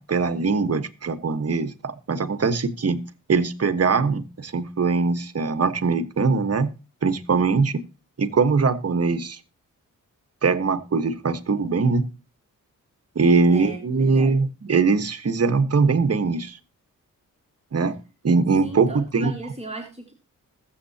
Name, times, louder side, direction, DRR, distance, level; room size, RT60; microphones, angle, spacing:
voice 1, 0.0-3.0 3.3-6.7 7.0-7.8 8.2-9.4 10.4-12.1 13.1-16.6 17.7-18.0 18.2-19.4, right 4 dB, 50° right, 1.3 m, -21 dB
voice 2, 13.5-14.3 18.6-20.2, right 2 dB, 20° right, 2.0 m, -37 dB
21.0 x 7.5 x 2.8 m
cardioid pair, 90°, 33 cm